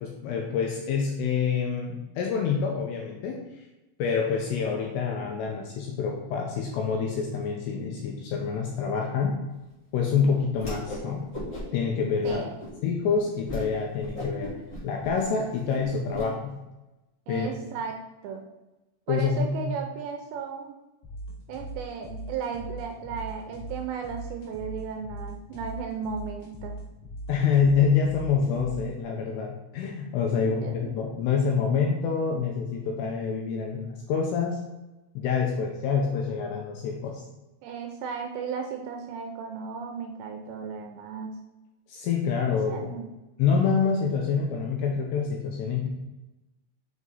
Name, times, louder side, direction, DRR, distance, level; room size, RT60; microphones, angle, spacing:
voice 1, 0.0-3.6 4.0-9.4 9.9-11.3 11.7-12.4 12.8-14.5 14.8-16.5 17.3-17.5 19.1-19.6 27.3-34.6 35.2-37.2 41.9-42.9 43.4-45.9, left 6 dB, 80° left, 1 dB, 2.5 m, -27 dB
Whoosh swoosh swish, 10.6-11.1 11.3-11.8 12.2-12.7 13.1-13.2 13.5-13.7 14.0-16.2, left 1 dB, 30° left, 1.2 m, -37 dB
voice 2, 12.2-12.6 17.3-17.9 18.2-18.4 19.1-20.8 21.5-26.7 30.3-30.9 37.6-41.4 42.7-43.1, right 6 dB, 85° right, 3 dB, 2.6 m, -35 dB
sound 1, 21.0-29.0, right 1 dB, 60° left, 3.1 m, -40 dB
6.7 x 5.1 x 4.0 m, 1.0 s
omnidirectional pair, 5.5 m